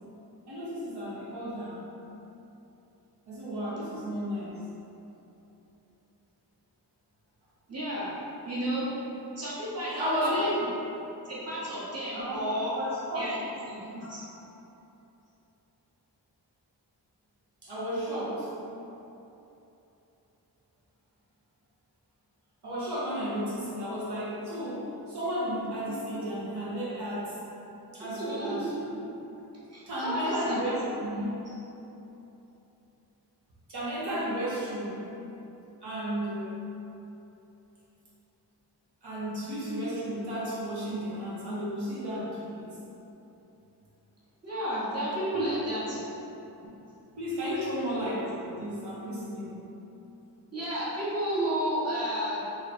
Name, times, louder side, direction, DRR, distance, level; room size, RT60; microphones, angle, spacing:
voice 1, 0.5-1.8 3.3-4.6 10.0-10.5 12.1-12.4 12.7-13.4 13.7-13.9 14.3-14.4 17.6-18.5 22.6-27.4 27.9-28.7 29.9-31.5 33.7-35.0 35.8-36.5 39.0-42.7 45.3-45.4 47.2-49.6, equal, 80° right, -9 dB, 1.0 m, -33 dB
voice 2, 7.7-8.1 8.4-8.9 9.4-10.6 11.2-12.7 13.1-14.2 28.2-28.7 29.7-30.6 44.4-46.2 50.5-52.5, right 1 dB, 40° right, -9 dB, 1.1 m, -32 dB
3.0 x 2.8 x 4.2 m, 3.0 s
wide cardioid pair, 90°, 39 cm